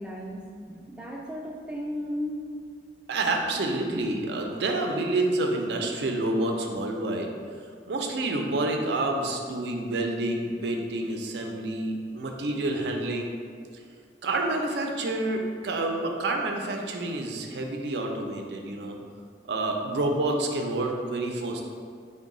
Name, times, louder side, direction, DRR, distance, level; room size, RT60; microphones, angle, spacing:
voice 1, 0.0-2.5 3.9-4.0, equal, 5° right, -2 dB, 0.3 m, -35 dB
voice 2, 3.1-7.3 7.9-13.3 14.2-19.0 19.5-21.6, right 2 dB, 75° right, 2 dB, 0.4 m, -28 dB
3.8 x 2.1 x 3.6 m, 2.1 s
head